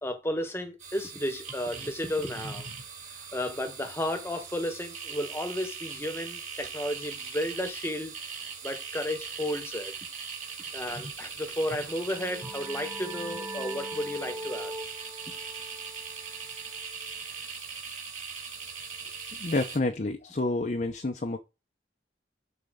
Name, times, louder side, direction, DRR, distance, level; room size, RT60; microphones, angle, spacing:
voice 1, 0.0-2.7 3.3-8.1 8.6-9.9 10.7-14.7, left 1 dB, 15° left, 1.1 m, -33 dB
sound 1, 0.8-19.8, right 5 dB, 40° right, 2.7 m, -40 dB
sound 2, 11.8-17.2, right 1 dB, 20° right, 1.2 m, -41 dB
voice 2, 19.4-21.4, left 2 dB, 40° left, 0.6 m, -29 dB
11.5 x 4.4 x 3.6 m
head